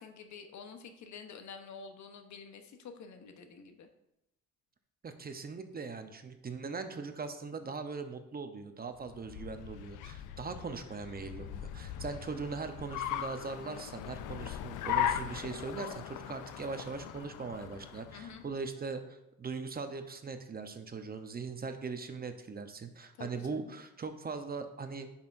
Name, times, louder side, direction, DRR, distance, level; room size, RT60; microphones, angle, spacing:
voice 1, 0.0-3.9 18.1-18.4 23.2-23.7, left 5 dB, 70° left, 7 dB, 1.0 m, -48 dB
voice 2, 5.0-25.1, right 4 dB, 30° right, 7 dB, 0.8 m, -40 dB
Car, 9.0-18.5, left 10 dB, 85° left, 0.5 m, -39 dB
10.5 x 5.7 x 2.6 m, 0.86 s
cardioid pair, 90°, 30 cm